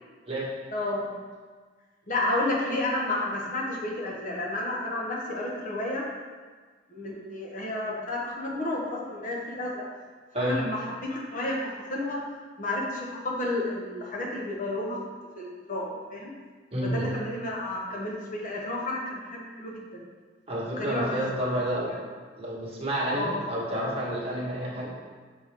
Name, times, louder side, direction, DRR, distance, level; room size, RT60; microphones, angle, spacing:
voice 1, 0.7-1.2 2.1-6.1 6.9-9.9 10.3-12.2 12.6-15.0 15.3-16.3 16.8-20.1 20.8-21.3 23.1-23.4, left 1 dB, 45° left, -3 dB, 1.0 m, -31 dB
voice 2, 16.7-17.1 20.5-21.9 22.4-24.9, right 1 dB, 35° right, -5 dB, 1.3 m, -29 dB
6.5 x 4.5 x 3.4 m, 1.5 s
head